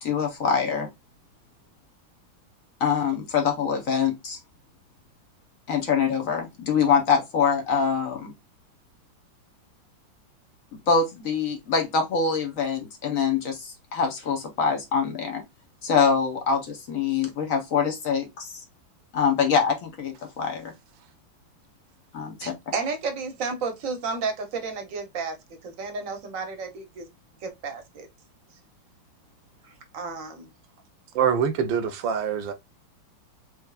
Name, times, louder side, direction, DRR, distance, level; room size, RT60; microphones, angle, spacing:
voice 1, 0.0-0.9 2.8-4.4 5.7-8.3 10.9-15.4 15.8-18.6 19.1-20.7 22.1-22.5, left 6 dB, 55° left, 1.1 m, -24 dB
voice 2, 22.4-25.4 25.6-27.1 27.4-28.1 29.9-30.5, right 4 dB, 50° right, 1.1 m, -32 dB
voice 3, 31.1-32.5, right 7 dB, 75° right, 1.4 m, -24 dB
4.5 x 3.1 x 2.3 m
omnidirectional pair, 2.1 m